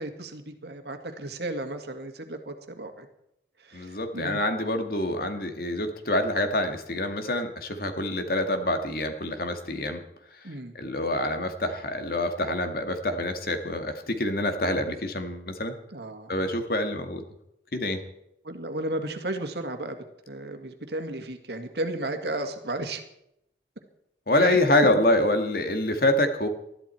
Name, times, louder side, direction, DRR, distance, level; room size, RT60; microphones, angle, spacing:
voice 1, 0.0-3.1 3.6-4.4 10.4-10.7 15.9-16.3 18.4-20.0 20.3-23.0 24.4-24.6, right 1 dB, 65° right, 6 dB, 2.0 m, -34 dB
voice 2, 3.7-10.0 10.4-15.7 16.3-17.2 17.7-18.0 24.3-26.5, left 1 dB, 55° left, 6 dB, 1.9 m, -26 dB
20.0 x 13.0 x 4.5 m, 0.78 s
head